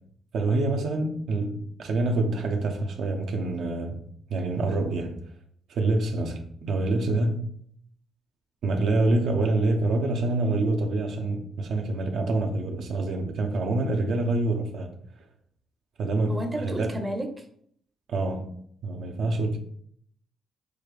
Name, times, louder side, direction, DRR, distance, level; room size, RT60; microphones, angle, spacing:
voice 1, 0.3-4.0 4.3-5.1 5.7-7.4 8.6-14.9 16.0-17.0 18.1-18.5 18.8-19.6, right 2 dB, 70° right, 0.7 m, -26 dB
voice 2, 16.3-17.5, right 1 dB, 20° right, 0.7 m, -32 dB
6.6 x 2.5 x 3.2 m
cardioid pair, 90°, 0 cm